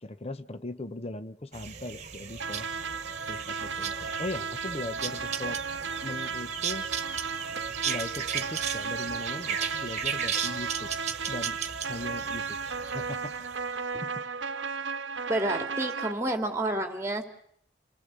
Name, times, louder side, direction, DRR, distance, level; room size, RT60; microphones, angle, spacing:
voice 1, 0.0-2.7 3.3-5.6 6.0-6.9 7.9-10.9 11.3-11.6 11.9-13.3 14.0-14.2, left 2 dB, 35° left, 11 dB, 1.0 m, -39 dB
sound 1, 1.5-13.8, right 7 dB, 40° right, 1.6 m, -36 dB
sound 2, 2.4-16.1, right 5 dB, 85° right, 1.0 m, -35 dB
voice 2, 15.3-17.2, right 1 dB, 15° right, 6 dB, 2.5 m, -29 dB
28.0 x 19.5 x 8.3 m, 0.66 s
head